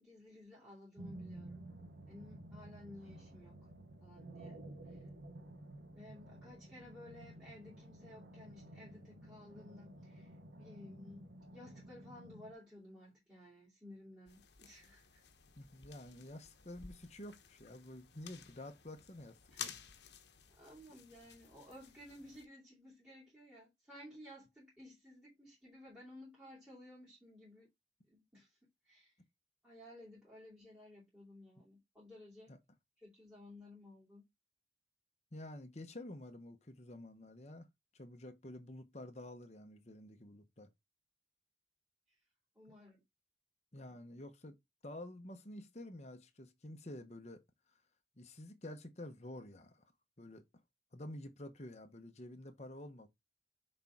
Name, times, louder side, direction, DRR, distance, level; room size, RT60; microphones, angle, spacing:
voice 1, 0.0-1.7 2.1-3.7 4.0-5.1 5.9-11.3 11.5-15.2 19.5-19.8 20.6-27.7 28.1-28.6 28.8-29.1 29.6-32.5 33.0-34.3 42.5-43.0 43.8-44.0, left 1 dB, 10° right, 2.9 m, -56 dB
sound 1, 1.0-12.5, right 1 dB, 90° right, 1.2 m, -53 dB
sound 2, 14.3-22.5, left 8 dB, 75° left, 1.0 m, -53 dB
voice 2, 15.6-19.8 32.5-32.6 35.3-37.7 37.9-40.7 43.7-44.6 44.8-47.4 48.2-49.9 50.2-50.4 50.9-53.1, left 1 dB, 40° left, 1.0 m, -50 dB
6.6 x 4.4 x 3.6 m
head